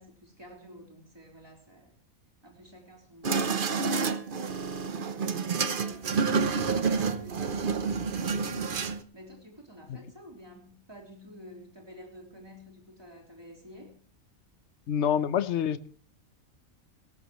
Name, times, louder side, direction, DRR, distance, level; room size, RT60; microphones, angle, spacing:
voice 1, 0.0-2.0 2.4-3.7 4.4-8.5 8.9-14.0, equal, 15° right, 3.6 m, -50 dB
sound 1, 3.2-9.0, right 5 dB, 45° right, 0.9 m, -29 dB
voice 2, 14.9-15.9, left 9 dB, 60° left, 1.1 m, -27 dB
18.0 x 15.0 x 3.1 m
omnidirectional pair, 1.4 m